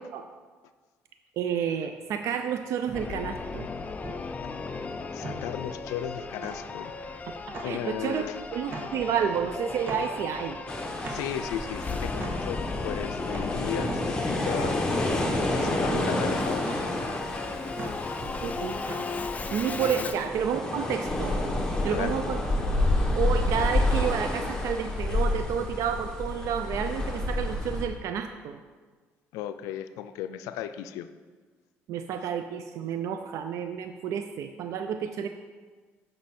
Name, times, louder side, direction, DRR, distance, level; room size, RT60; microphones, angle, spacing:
voice 1, 1.4-3.7 7.6-8.2 8.5-10.6 18.2-18.8 19.5-21.3 21.8-22.4 23.1-28.6 31.9-35.3, right 8 dB, 70° right, 7 dB, 0.4 m, -30 dB
sound 1, 2.0-20.5, right 2 dB, 40° right, 1.4 m, -42 dB
Singing / Musical instrument, 2.9-20.3, left 4 dB, 25° left, 0.5 m, -36 dB
voice 2, 5.1-6.9 7.6-8.4 11.1-14.8 15.5-16.9 20.0-20.1 21.9-22.2 29.3-31.1, left 10 dB, 90° left, 10 dB, 0.4 m, -35 dB
sound 2, 10.7-27.8, left 1 dB, 10° left, 1.2 m, -29 dB
7.9 x 5.3 x 4.3 m, 1.4 s
cardioid pair, 90°, 5 cm